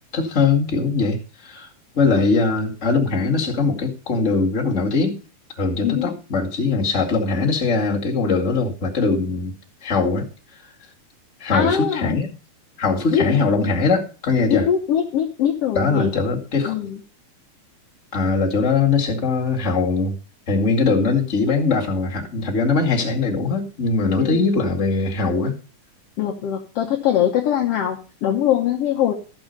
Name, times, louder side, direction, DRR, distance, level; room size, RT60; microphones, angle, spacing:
voice 1, 0.1-1.7 1.9-5.1 5.5-9.5 9.8-10.3 11.4-12.3 12.8-14.7 15.7-16.8 18.1-20.1 20.5-25.5, left 4 dB, 25° left, 2.1 m, -21 dB
voice 2, 5.8-6.1 11.5-12.2 13.1-13.3 14.5-16.2 16.7-17.0 24.2-24.4 26.2-29.1, left 9 dB, 60° left, 1.8 m, -22 dB
14.0 x 6.2 x 5.3 m
omnidirectional pair, 3.6 m